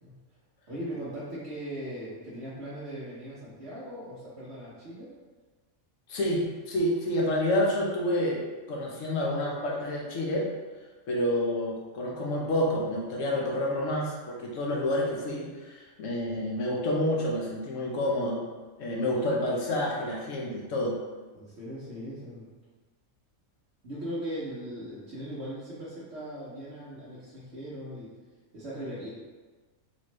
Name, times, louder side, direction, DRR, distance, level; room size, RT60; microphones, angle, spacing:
voice 1, 0.7-5.1 21.3-22.5 23.8-28.1 28.5-29.1, equal, 55° right, -11 dB, 1.1 m, -39 dB
voice 2, 6.1-10.5 11.1-18.4 18.8-21.0, left 1 dB, 65° left, -2 dB, 1.1 m, -29 dB
4.2 x 3.1 x 3.1 m, 1.3 s
omnidirectional pair, 1.5 m